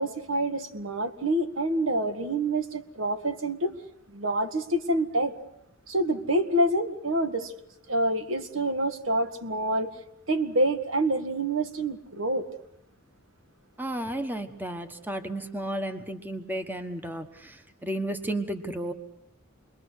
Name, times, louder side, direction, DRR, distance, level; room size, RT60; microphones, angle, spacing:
voice 1, 0.0-3.7 4.1-5.3 5.9-7.5 7.9-9.9 10.3-12.5, right 1 dB, 65° right, 7 dB, 1.8 m, -27 dB
voice 2, 13.8-18.9, right 1 dB, 10° right, 7 dB, 1.3 m, -33 dB
28.5 x 22.0 x 6.4 m, 0.79 s
head